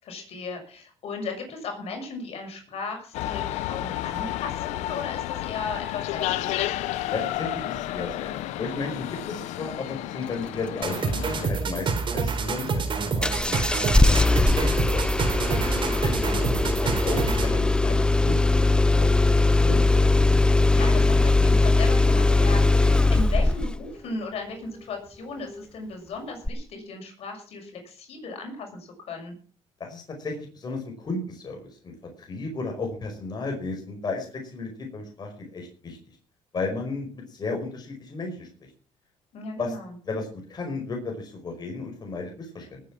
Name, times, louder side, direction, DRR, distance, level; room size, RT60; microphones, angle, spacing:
voice 1, 0.0-6.7 15.5-16.3 20.7-29.3 39.3-39.9, left 4 dB, 60° left, 3 dB, 6.3 m, -36 dB
sound 1, 3.1-11.5, left 14 dB, 90° left, 0.9 m, -31 dB
voice 2, 7.1-14.1 14.4-15.3 15.9-20.0 29.8-36.0 36.5-38.5 39.6-39.8 40.0-42.8, left 3 dB, 40° left, 2 dB, 5.2 m, -34 dB
sound 2, 10.8-17.6, right 4 dB, 45° right, 4.0 m, -27 dB
Engine starting, 13.2-23.8 26.5-26.6, left 2 dB, 10° left, 0.7 m, -20 dB
19.0 x 8.6 x 6.1 m, 0.42 s
cardioid pair, 105°, 11 cm